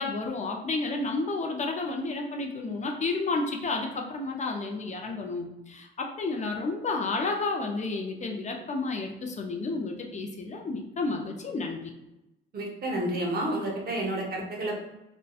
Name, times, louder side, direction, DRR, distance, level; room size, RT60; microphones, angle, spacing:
voice 1, 0.0-11.8, left 3 dB, 35° left, 2 dB, 0.4 m, -31 dB
voice 2, 12.5-14.8, right 1 dB, 50° right, -1 dB, 0.7 m, -30 dB
2.6 x 2.1 x 2.3 m, 0.92 s
cardioid pair, 90°, 20 cm